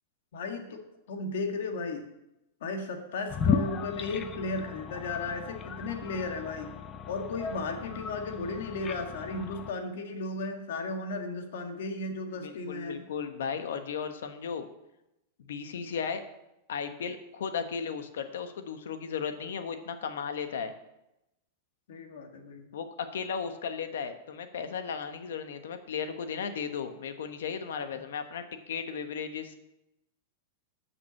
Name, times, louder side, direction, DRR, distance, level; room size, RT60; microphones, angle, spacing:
voice 1, 0.3-0.8 1.1-2.0 2.6-6.7 7.1-13.1 21.9-22.7, left 3 dB, 60° left, 4 dB, 1.7 m, -35 dB
sound 1, 3.3-9.7, left 6 dB, 15° left, 0.5 m, -35 dB
voice 2, 12.3-14.7 15.5-16.2 16.7-20.7 22.7-29.6, left 6 dB, 90° left, 8 dB, 1.2 m, -35 dB
11.0 x 6.0 x 7.0 m, 0.89 s
supercardioid pair, 180°, 0 cm